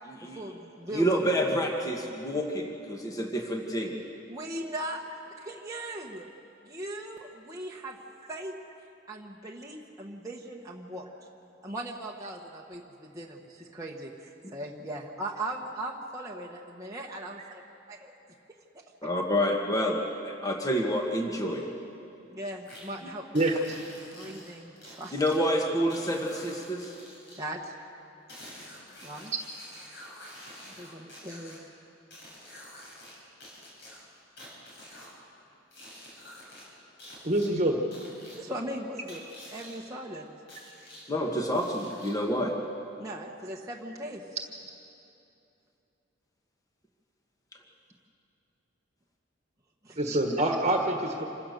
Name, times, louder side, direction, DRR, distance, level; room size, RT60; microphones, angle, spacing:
voice 1, 0.2-1.1 4.3-6.3 6.6-8.0 8.3-8.6 9.1-11.1 11.6-17.6 17.9-18.2 18.7-18.8 22.3-23.4 24.1-25.2 27.4-27.7 29.0-29.3 30.8-31.6 38.4-39.2 39.5-40.3 43.0-44.2 49.8-50.0, right 1 dB, 15° right, -2 dB, 1.1 m, -39 dB
voice 2, 0.9-3.9 19.0-21.6 25.1-26.9 41.1-42.5, equal, 20° left, 1 dB, 1.6 m, -28 dB
sound 1, 22.6-22.8 23.4-25.4 25.9-27.4 28.3-31.6 32.1-33.2 33.4-35.1 35.7-36.6 37.0-37.5 37.9-38.4 39.1-39.8 40.5-41.0 41.5-42.3, left 1 dB, 60° left, 6.8 m, -48 dB
voice 3, 37.2-37.8 50.0-51.2, right 1 dB, 35° right, 2 dB, 1.5 m, -25 dB
26.5 x 16.0 x 6.7 m, 2.8 s
head